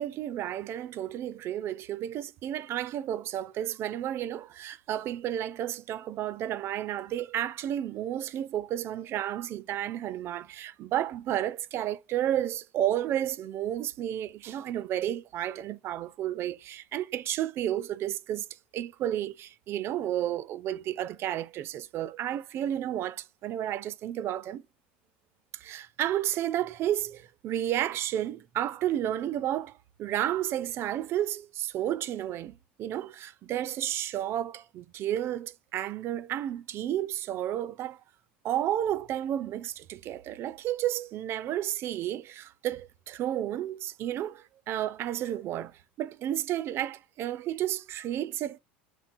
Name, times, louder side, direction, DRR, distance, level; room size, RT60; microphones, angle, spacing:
voice 1, 0.0-18.5 18.7-24.6 25.5-38.0 38.4-48.6, right 11 dB, 45° right, 0.4 m, -32 dB
4.5 x 3.5 x 2.5 m
hypercardioid pair, 80°, 6 cm